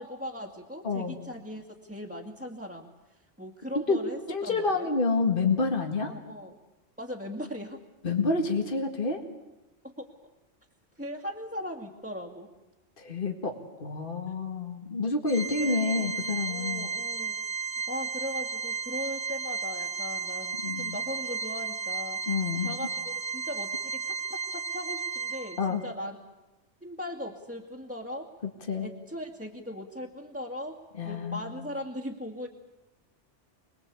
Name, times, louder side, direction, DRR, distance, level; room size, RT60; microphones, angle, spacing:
voice 1, 0.0-4.9 6.0-6.6 7.0-7.8 9.8-10.3 11.0-12.5 15.6-16.2 16.4-17.4 17.9-22.2 22.6-26.2 26.8-28.3 28.8-30.8 31.0-32.5, left 1 dB, 5° right, -2 dB, 2.2 m, -39 dB
voice 2, 0.8-1.2 3.9-4.0 4.3-6.1 8.0-9.2 13.0-16.9 20.6-21.0 22.3-22.7 25.6-25.8 28.7-28.9 31.0-31.6, left 4 dB, 50° left, 4 dB, 2.2 m, -28 dB
Organ, 15.3-25.9, right 5 dB, 25° right, 1.1 m, -34 dB
26.0 x 21.0 x 8.4 m, 1.0 s
omnidirectional pair, 1.2 m